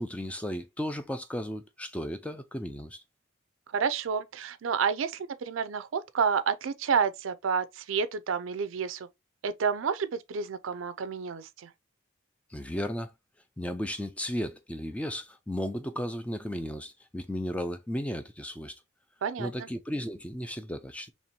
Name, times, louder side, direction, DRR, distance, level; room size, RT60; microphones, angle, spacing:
voice 1, 0.0-3.0 12.5-13.1 13.6-18.7 19.4-21.1, equal, 5° left, 0.4 m, -34 dB
voice 2, 3.7-9.1 9.4-11.7 19.2-19.7, right 6 dB, 90° right, 0.4 m, -30 dB
4.2 x 3.0 x 2.7 m
head